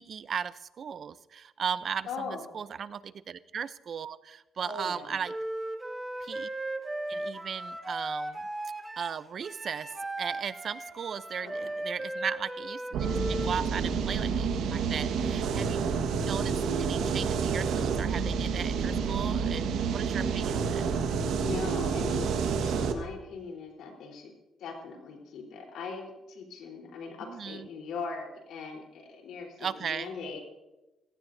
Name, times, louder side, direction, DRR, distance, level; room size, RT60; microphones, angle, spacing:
voice 1, 0.0-2.1 2.5-5.3 6.2-6.5 7.1-8.4 9.0-9.9 10.2-20.9 27.3-27.6 29.6-30.1, right 7 dB, 55° right, 15 dB, 0.6 m, -37 dB
voice 2, 2.1-2.5 4.6-5.2 11.4-11.8 20.3-20.5 21.4-24.3 24.6-30.4, left 4 dB, 80° left, 2 dB, 3.8 m, -40 dB
Wind instrument woodwind instrument, 5.2-13.6, right 1 dB, 15° right, 1.6 m, -36 dB
sound 1, 12.9-22.9, right 6 dB, 85° right, 1.4 m, -29 dB
20.5 x 17.0 x 2.7 m, 1.0 s
cardioid pair, 90°, 0 cm